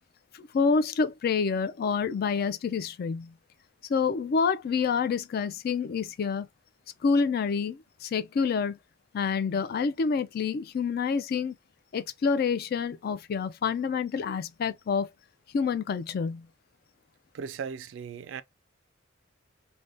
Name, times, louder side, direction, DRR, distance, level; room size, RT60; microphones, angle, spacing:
voice 1, 0.3-3.3 3.9-6.5 7.0-8.8 9.1-11.5 11.9-15.1 15.5-16.5, left 5 dB, 50° left, 0.3 m, -27 dB
voice 2, 17.3-18.4, right 6 dB, 70° right, 0.3 m, -37 dB
3.3 x 2.1 x 2.6 m
head